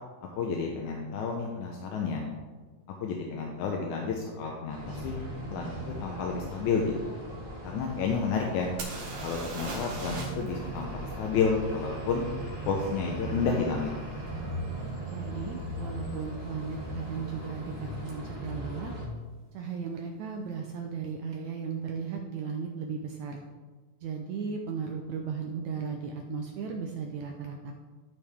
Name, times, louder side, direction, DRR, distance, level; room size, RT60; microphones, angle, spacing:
voice 1, 0.3-2.3 3.0-5.2 5.5-5.7 6.0-7.2 7.6-8.8 9.2-10.9 11.2-12.2 12.6-13.9, left 5 dB, 75° left, 0 dB, 2.0 m, -30 dB
sound 1, 4.7-19.1, right 1 dB, 20° right, 1.9 m, -38 dB
sound 2, 8.8-10.5 10.8-10.9 14.3-14.4 15.0-15.2 15.5-16.1 18.1-18.2 18.5-18.6, right 2 dB, 50° right, 2.1 m, -39 dB
voice 2, 15.1-18.9 19.5-23.4 24.0-27.7, right 5 dB, 80° right, 2 dB, 1.7 m, -36 dB
14.0 x 5.2 x 3.5 m, 1.3 s
omnidirectional pair, 3.8 m